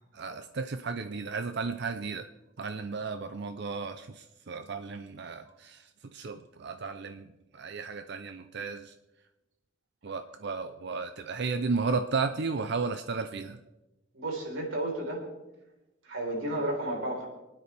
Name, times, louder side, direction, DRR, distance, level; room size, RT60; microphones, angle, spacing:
voice 1, 0.1-2.3 2.6-5.8 6.1-8.9 10.0-13.6, right 4 dB, 55° right, 8 dB, 0.6 m, -34 dB
voice 2, 14.1-15.3 16.0-17.3, right 1 dB, 75° right, -1 dB, 4.2 m, -32 dB
25.5 x 9.5 x 3.4 m, 1.0 s
head